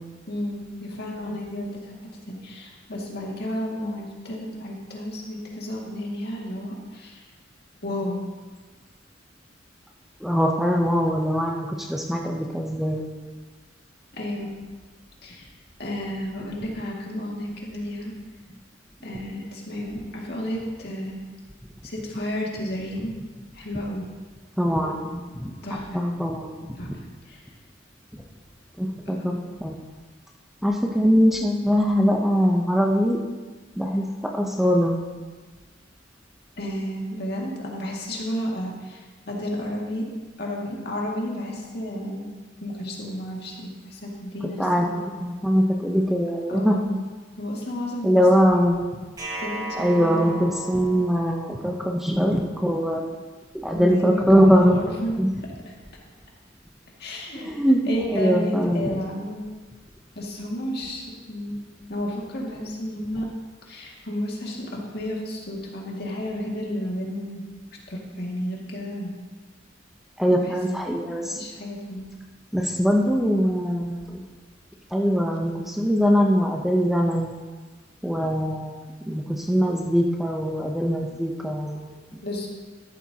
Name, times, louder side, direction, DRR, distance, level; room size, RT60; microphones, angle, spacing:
voice 1, 0.3-1.9 2.3-7.2 7.8-8.2 14.1-14.6 15.2-15.5 15.8-18.1 19.0-21.2 21.8-23.1 23.5-24.1 25.6-26.0 26.8-26.9 27.3-27.4 29.1-29.3 36.6-40.0 40.4-42.3 42.6-45.0 46.5-46.9 47.4-48.2 49.4-50.3 53.7-55.2 55.7-55.8 57.0-59.4 60.2-61.6 61.9-63.3 63.7-67.5 67.9-69.1 70.3-70.6 71.4-72.1 82.2-82.5, left 1 dB, 60° left, -2 dB, 2.1 m, -32 dB
voice 2, 10.2-13.0 24.6-26.7 28.8-29.7 30.6-33.2 33.8-34.0 34.3-34.9 44.6-44.9 45.2-47.0 48.0-49.0 49.8-53.2 53.6-54.8 55.2-55.3 57.3-59.0 70.2-71.4 72.5-74.2 74.9-77.4 78.0-82.2, equal, ahead, 0 dB, 0.7 m, -22 dB
sound 1, 49.2-52.2, right 1 dB, 20° right, 1.3 m, -36 dB
13.0 x 11.5 x 2.9 m, 1.3 s
head